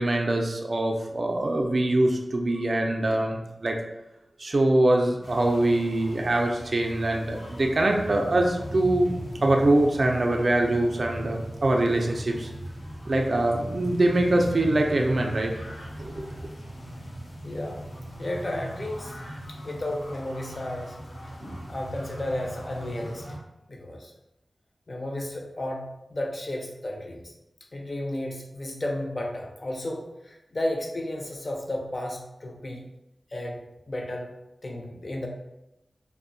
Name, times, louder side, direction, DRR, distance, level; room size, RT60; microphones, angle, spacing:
voice 1, 0.0-3.8 4.4-9.1 9.4-12.5 13.1-15.5 16.0-16.3, right 1 dB, 55° right, 2 dB, 0.3 m, -23 dB
sound 1, 5.2-23.4, equal, 75° left, 0.7 m, -38 dB
voice 2, 17.4-17.8 18.2-19.1 19.6-20.9 21.7-23.4 23.7-24.1 24.9-27.3 27.7-32.8 33.3-33.6 33.9-34.3 34.6-35.3, left 1 dB, 45° left, 0 dB, 0.5 m, -33 dB
2.7 x 2.0 x 2.5 m, 0.89 s
wide cardioid pair, 90°, 0 cm